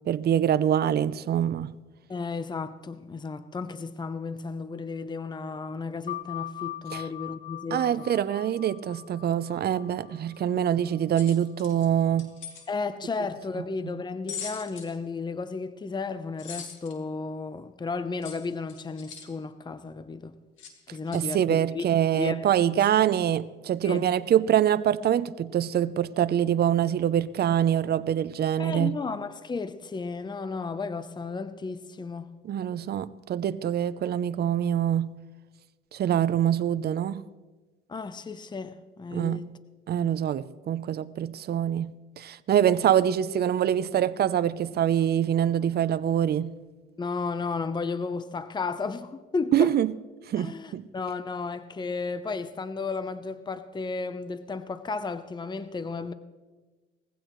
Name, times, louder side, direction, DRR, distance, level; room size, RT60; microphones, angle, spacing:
voice 1, 0.1-1.7 6.9-7.0 7.7-12.3 13.8-13.9 21.1-29.0 32.4-35.1 35.9-37.2 39.1-39.5 39.9-46.5 49.5-49.9 50.3-50.8, right 10 dB, 55° right, 0.6 m, -25 dB
voice 2, 2.1-8.1 10.5-10.7 12.7-20.3 20.9-21.9 22.1-22.4 22.8-22.9 23.8-24.1 28.6-32.3 37.9-39.5 47.0-49.7 50.4-56.1, left 4 dB, 20° left, 0.7 m, -33 dB
sound 1, 6.1-11.2, left 14 dB, 40° left, 1.1 m, -41 dB
sound 2, 11.2-12.7 14.3-15.0 16.4-16.9 18.2-19.3 20.6-20.7 21.1-21.2, left 6 dB, 80° left, 2.3 m, -41 dB
20.0 x 15.5 x 3.1 m
cardioid pair, 90°, 20 cm